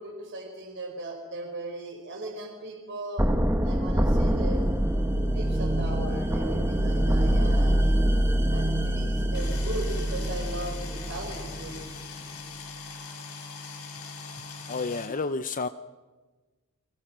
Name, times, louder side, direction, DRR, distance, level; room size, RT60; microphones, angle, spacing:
voice 1, 0.0-3.3 3.6-4.7 5.3-8.0 8.5-11.8, right 1 dB, 55° right, 3 dB, 5.1 m, -38 dB
sound 1, 3.2-12.0, right 1 dB, 10° right, 1.4 m, -25 dB
sound 2, 9.3-15.1, left 4 dB, 80° left, 7.1 m, -41 dB
voice 2, 14.7-15.7, left 4 dB, 35° left, 10 dB, 0.7 m, -30 dB
30.0 x 24.5 x 6.3 m, 1.3 s
head